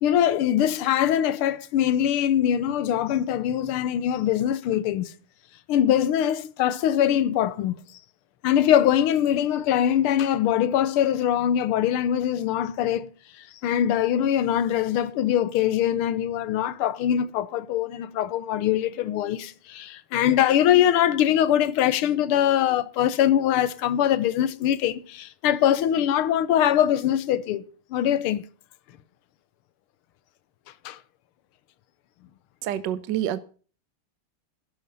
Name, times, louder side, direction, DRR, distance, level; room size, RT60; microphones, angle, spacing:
voice 1, 0.0-5.1 5.7-7.8 8.4-13.1 13.6-27.6 27.9-28.4 30.8-31.0, left 10 dB, 80° left, 1.6 m, -22 dB
voice 2, 32.6-33.4, right 11 dB, 65° right, 1.2 m, -27 dB
12.0 x 11.0 x 5.5 m
omnidirectional pair, 2.4 m